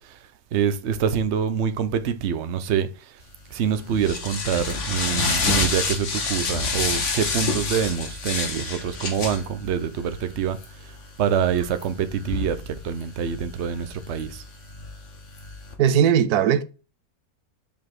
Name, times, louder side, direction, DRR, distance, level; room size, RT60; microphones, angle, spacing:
voice 1, 0.0-3.2 3.5-14.4, right 8 dB, 55° right, 0.9 m, -26 dB
sound 1, 3.3-15.7, left 4 dB, 55° left, 1.7 m, -29 dB
voice 2, 15.8-16.6, right 9 dB, 85° right, 1.2 m, -19 dB
5.4 x 4.9 x 5.9 m
omnidirectional pair, 1.6 m